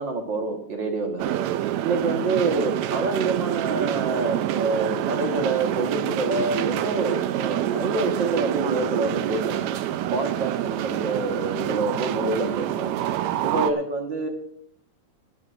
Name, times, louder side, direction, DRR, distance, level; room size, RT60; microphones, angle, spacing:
voice 1, 0.0-9.7 10.1-13.0 13.4-14.3, right 3 dB, 45° right, 2 dB, 1.8 m, -27 dB
sound 1, 1.2-13.7, right 12 dB, 75° right, 1.8 m, -27 dB
20.0 x 12.0 x 2.6 m, 0.67 s
omnidirectional pair, 3.5 m